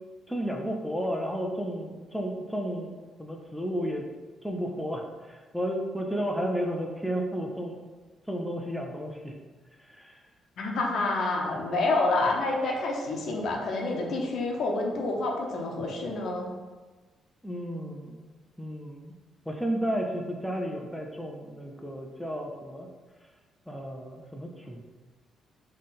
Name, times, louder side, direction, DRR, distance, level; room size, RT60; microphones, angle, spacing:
voice 1, 0.3-4.1 4.4-7.8 8.3-9.4 9.8-10.2 17.4-18.2 18.6-19.1 19.5-22.9 23.7-24.8, equal, ahead, 1 dB, 0.5 m, -33 dB
voice 2, 10.6-16.5, left 2 dB, 65° left, 0 dB, 0.9 m, -28 dB
3.7 x 3.2 x 4.1 m, 1.3 s
cardioid pair, 90°, 0 cm